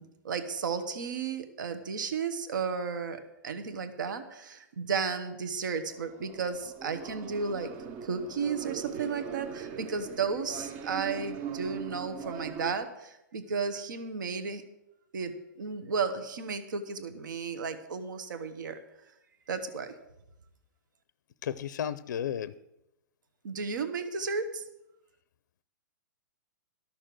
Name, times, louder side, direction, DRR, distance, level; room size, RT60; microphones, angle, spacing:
voice 1, 0.0-7.7 8.0-14.6 15.1-18.8 19.5-19.9 23.4-24.6, right 5 dB, 75° right, 9 dB, 1.3 m, -34 dB
sound 1, 5.9-12.7, right 7 dB, 15° right, 0.4 m, -40 dB
voice 2, 21.4-22.5, left 9 dB, 65° left, 15 dB, 0.5 m, -33 dB
13.0 x 6.6 x 7.6 m, 0.88 s
hypercardioid pair, 170°, 11 cm